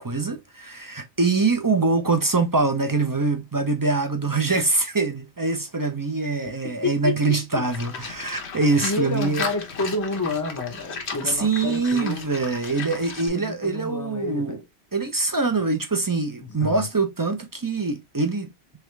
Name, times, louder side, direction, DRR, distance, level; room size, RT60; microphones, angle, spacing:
voice 1, 0.0-9.5 11.2-14.6 14.9-18.5, right 3 dB, 25° right, 0.4 m, -24 dB
voice 2, 6.6-7.7 8.8-12.2 13.3-14.6 16.6-16.9, left 3 dB, 20° left, 0.7 m, -29 dB
Livestock farm animals working animals, 7.7-13.3, left 5 dB, 80° left, 1.2 m, -35 dB
3.5 x 3.4 x 3.1 m
omnidirectional pair, 1.1 m